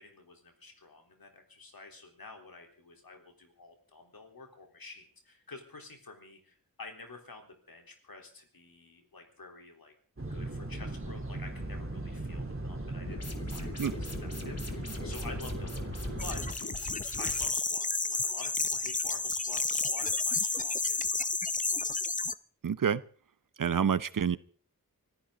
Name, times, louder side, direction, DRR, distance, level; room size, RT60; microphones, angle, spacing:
voice 1, 0.0-9.9 10.3-16.0 16.2-16.7 17.2-21.4 21.6-22.0, left 3 dB, 75° left, 3 dB, 3.8 m, -49 dB
sound 1, 10.2-16.5, right 2 dB, 35° right, 3.4 m, -38 dB
sound 2, 13.1-17.5, left 2 dB, 45° left, 2.7 m, -40 dB
sound 3, 16.2-22.3, left 3 dB, 20° left, 0.7 m, -31 dB
voice 2, 22.6-23.0 23.6-24.4, right 7 dB, 60° right, 18 dB, 0.7 m, -27 dB
25.0 x 14.5 x 3.9 m, 0.44 s
cardioid pair, 50°, 36 cm